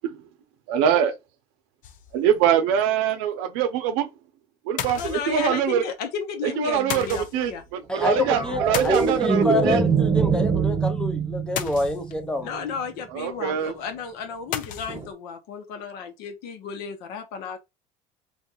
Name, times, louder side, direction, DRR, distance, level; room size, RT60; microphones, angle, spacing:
voice 1, 0.7-1.1 2.1-4.1 4.7-5.8 6.4-9.8 13.1-13.7, right 9 dB, 85° right, 0.6 m, -23 dB
sound 1, 1.8-2.4 2.8-2.9 3.1-3.2 4.8-5.6 6.9-7.5 8.7-9.6 11.6-12.3 14.5-15.0, left 10 dB, 55° left, 0.5 m, -33 dB
voice 2, 5.0-7.6 12.4-17.6, left 6 dB, 70° left, 1.0 m, -33 dB
voice 3, 7.9-12.5, left 2 dB, 5° left, 0.6 m, -27 dB
sound 2, 8.0-12.5 14.9-15.1, right 5 dB, 25° right, 1.2 m, -24 dB
2.6 x 2.3 x 4.0 m
cardioid pair, 125°, 16 cm